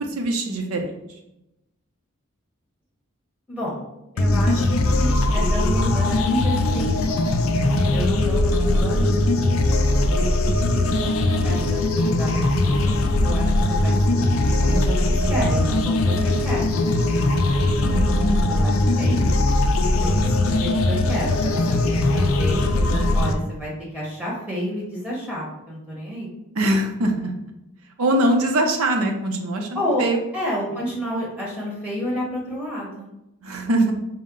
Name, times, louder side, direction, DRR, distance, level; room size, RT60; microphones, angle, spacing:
voice 1, 0.2-0.9 17.7-18.7 26.6-27.3 28.0-30.2 33.4-33.9, right 1 dB, 85° right, 3 dB, 0.6 m, -23 dB
voice 2, 3.5-3.8 4.1-4.7 5.0-7.2 7.9-9.4 10.0-17.3 18.5-19.3 20.0-26.3 29.7-30.0 30.3-33.1, equal, 5° right, -5 dB, 1.0 m, -30 dB
sound 1, 4.2-23.3, left 2 dB, 75° left, 0.4 m, -20 dB
4.3 x 2.1 x 3.7 m, 0.90 s
head